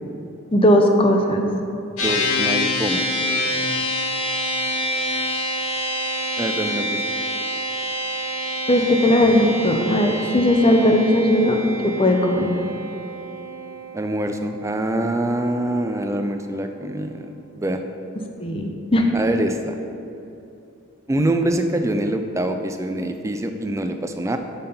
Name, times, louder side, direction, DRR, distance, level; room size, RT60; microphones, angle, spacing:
voice 1, 0.5-1.4 8.7-12.5 18.4-19.1, left 1 dB, 25° left, 4 dB, 0.6 m, -18 dB
voice 2, 1.9-3.0 6.4-7.0 13.9-17.8 19.1-19.8 21.1-24.4, right 1 dB, 15° right, 6 dB, 0.3 m, -25 dB
sound 1, 2.0-15.5, left 1 dB, 90° left, 1.2 m, -27 dB
5.7 x 5.5 x 6.7 m, 2.8 s
head